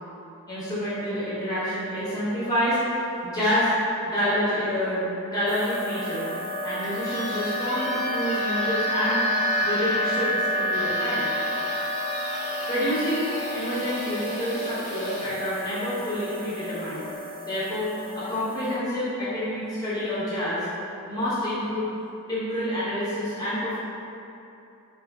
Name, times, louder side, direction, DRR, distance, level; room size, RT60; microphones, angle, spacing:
voice 1, 0.5-2.8 3.2-3.7 4.0-5.1 5.3-6.3 6.6-9.2 9.6-11.3 12.7-17.0 17.4-20.7 21.1-21.9 22.3-23.8, equal, 15° left, -11 dB, 0.8 m, -28 dB
sound 1, 5.5-18.7, equal, 75° right, 0.6 m, -30 dB
sound 2, 6.6-16.2, left 1 dB, 85° left, 0.5 m, -39 dB
3.1 x 2.5 x 2.2 m, 2.8 s
head